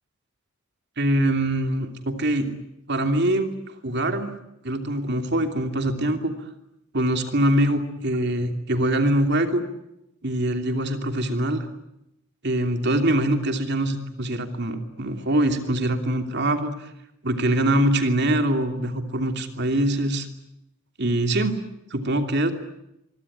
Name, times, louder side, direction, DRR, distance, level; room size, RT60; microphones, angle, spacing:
voice 1, 1.0-2.5 2.9-4.3 4.6-6.3 6.9-9.6 10.2-11.7 12.4-16.9 17.2-20.3 21.0-21.5 21.9-22.5, right 1 dB, 55° right, 6 dB, 2.9 m, -23 dB
25.0 x 23.5 x 9.9 m, 0.84 s
head